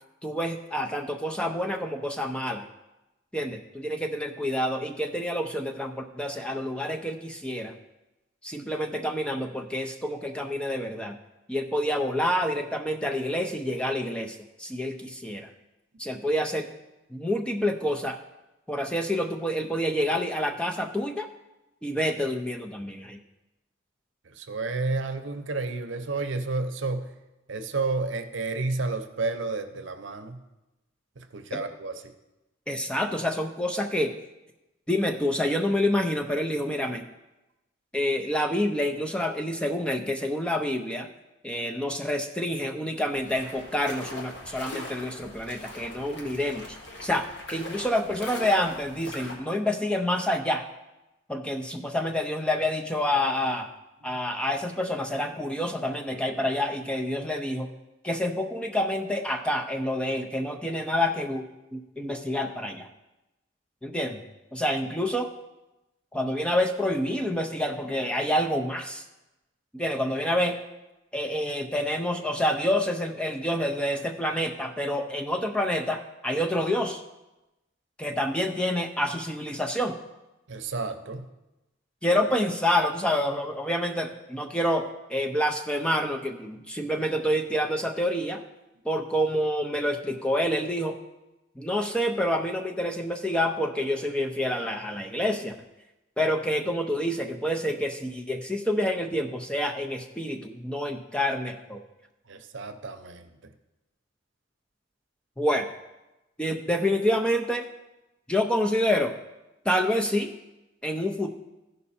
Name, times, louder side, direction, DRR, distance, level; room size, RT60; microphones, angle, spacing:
voice 1, 0.2-2.7 3.3-7.7 8.4-11.2 11.5-15.5 16.0-16.7 17.1-18.2 18.7-21.3 21.8-23.2 31.5-31.6 32.7-34.1 34.9-37.0 37.9-41.1 41.4-50.6 51.3-53.7 54.0-57.7 58.0-62.9 63.8-64.2 64.5-65.3 66.1-69.0 69.7-70.6 71.1-77.0 78.0-80.0 82.0-88.4 88.8-91.0 91.6-95.5 96.2-101.8 105.4-105.7 106.4-107.7 108.3-109.1 109.6-110.3 110.8-111.3, left 1 dB, 5° left, 4 dB, 0.5 m, -28 dB
voice 2, 24.3-27.1 27.5-30.4 31.2-32.1 80.5-81.3 102.3-103.3, right 3 dB, 65° right, 8 dB, 0.7 m, -31 dB
sound 1, 43.1-49.4, left 1 dB, 60° left, 1.6 m, -41 dB
14.5 x 5.4 x 4.2 m, 1.0 s
head